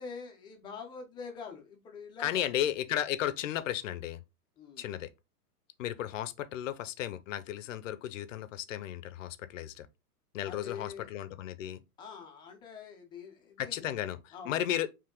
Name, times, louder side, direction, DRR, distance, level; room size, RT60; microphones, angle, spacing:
voice 1, 0.0-2.5 4.6-4.9 10.4-11.1 12.0-13.8 14.3-14.6, left 5 dB, 10° left, 0.5 m, -45 dB
voice 2, 2.2-4.2 4.8-5.1 5.8-9.9 10.3-11.8 13.6-14.2 14.4-14.9, left 11 dB, 55° left, 0.7 m, -34 dB
4.7 x 2.9 x 3.6 m
hypercardioid pair, 135°, 47 cm